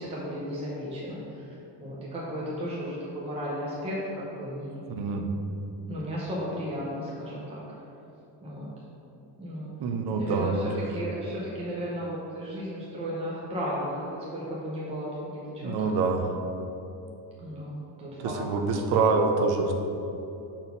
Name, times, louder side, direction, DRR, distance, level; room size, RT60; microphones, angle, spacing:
voice 1, 0.0-1.4 1.8-4.8 5.8-7.6 8.4-8.7 9.4-9.7 10.1-15.9 17.4-18.4, equal, 15° right, -6 dB, 0.8 m, -34 dB
voice 2, 4.9-5.3 9.8-10.7 15.6-16.3 18.2-19.7, right 4 dB, 55° right, 4 dB, 0.8 m, -26 dB
6.2 x 4.5 x 5.4 m, 3.0 s
cardioid pair, 175°, 45 cm